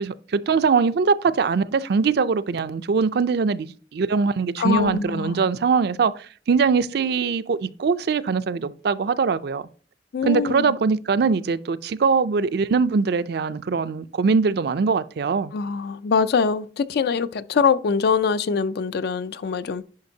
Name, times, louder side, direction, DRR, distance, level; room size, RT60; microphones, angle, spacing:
voice 1, 0.0-9.6 10.3-15.5, right 5 dB, 65° right, 0.4 m, -22 dB
voice 2, 4.6-5.4 10.1-10.7 15.5-19.8, left 5 dB, 65° left, 0.4 m, -23 dB
10.5 x 5.2 x 2.7 m
head